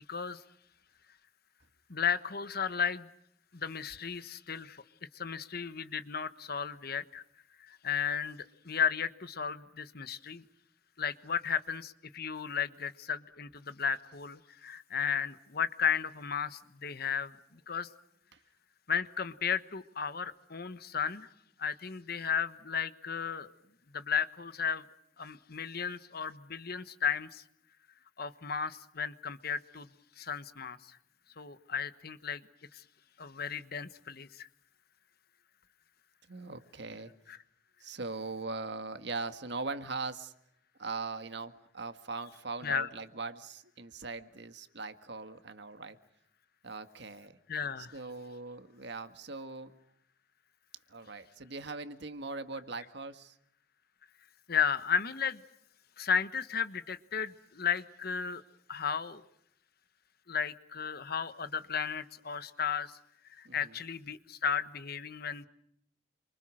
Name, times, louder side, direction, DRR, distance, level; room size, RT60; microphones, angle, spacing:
voice 1, 0.1-0.4 1.9-3.1 3.5-4.8 5.1-7.2 7.6-10.4 11.0-17.3 17.7-17.9 18.9-21.3 21.6-23.5 23.9-24.8 25.2-27.4 28.2-29.9 30.2-31.0 31.4-32.4 32.7-32.8 33.2-34.5 37.3-37.4 42.6-42.9 47.5-47.9 54.5-55.4 56.0-58.4 58.7-59.2 60.3-62.9 63.4-65.5, left 7 dB, 50° left, 13 dB, 1.2 m, -34 dB
voice 2, 36.2-37.2 37.8-40.3 40.8-46.0 46.6-47.4 47.8-49.7 50.9-53.4 63.5-63.8, right 3 dB, 60° right, 9 dB, 1.8 m, -40 dB
28.0 x 25.5 x 6.4 m, 0.73 s
head